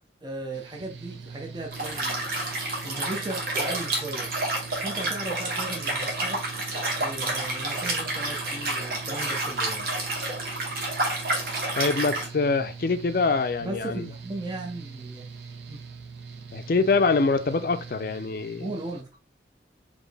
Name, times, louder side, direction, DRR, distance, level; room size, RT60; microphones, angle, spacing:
voice 1, 0.2-2.3 2.8-4.3 4.8-6.4 7.0-9.9 13.6-15.3 15.7-15.8 18.6-19.1, right 2 dB, 25° right, 0.6 m, -36 dB
Mechanical fan, 0.5-19.0, right 5 dB, 75° right, 0.6 m, -42 dB
Liquid, 1.7-12.3, right 2 dB, 55° right, 1.3 m, -29 dB
voice 2, 11.7-14.1 16.5-18.7, left 4 dB, 50° left, 0.4 m, -24 dB
4.3 x 3.0 x 3.3 m
head